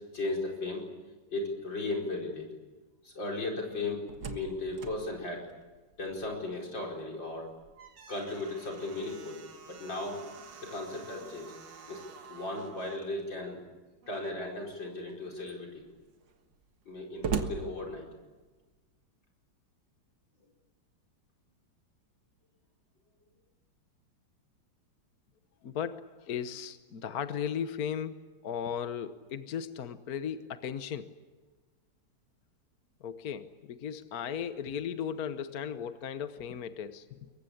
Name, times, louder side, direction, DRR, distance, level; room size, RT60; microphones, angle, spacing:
voice 1, 0.1-0.8 1.3-2.5 3.0-5.5 6.0-7.5 8.1-9.4 9.7-10.2 10.6-11.5 11.9-12.0 12.3-13.6 14.1-15.8 16.9-18.1, left 2 dB, 75° left, 0 dB, 5.5 m, -36 dB
Slam, 3.8-6.6 6.9-7.0 7.5-13.1 14.0-14.6 15.1-15.2 15.4-18.5, right 6 dB, 75° right, 2.2 m, -42 dB
voice 2, 25.6-31.1 33.0-37.1, left 8 dB, 55° left, 10 dB, 1.4 m, -36 dB
26.5 x 23.0 x 8.6 m, 1.3 s
omnidirectional pair, 2.0 m